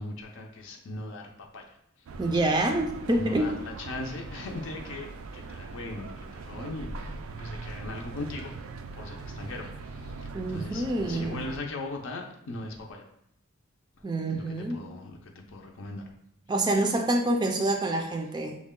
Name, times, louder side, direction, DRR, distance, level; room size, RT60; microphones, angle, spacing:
voice 1, 0.0-1.8 2.3-2.5 3.1-8.5 9.0-13.0 14.3-16.1, left 2 dB, 65° left, 1 dB, 0.5 m, -39 dB
sound 1, 2.1-11.6, right 3 dB, 85° right, 0.4 m, -41 dB
voice 2, 2.2-3.5 10.3-11.4 14.0-14.9 16.5-18.6, right 1 dB, 20° right, 3 dB, 0.4 m, -27 dB
6.2 x 2.2 x 3.6 m, 0.75 s
head